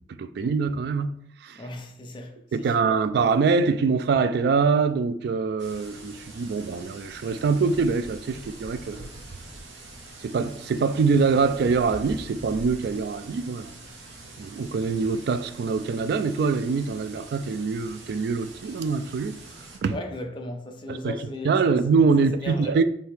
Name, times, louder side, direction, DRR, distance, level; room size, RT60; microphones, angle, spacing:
voice 1, 0.1-1.1 1.4-1.6 2.5-9.1 10.2-13.7 14.4-19.4 19.8-20.0 20.9-22.8, right 4 dB, 60° right, 0.3 m, -24 dB
voice 2, 1.6-2.8 19.9-21.8 22.4-22.7, left 2 dB, 30° left, 0.5 m, -36 dB
sound 1, 5.6-19.8, right 3 dB, 85° right, 0.9 m, -45 dB
sound 2, 7.0-13.1, equal, 30° right, 0.8 m, -44 dB
4.5 x 2.8 x 3.3 m
head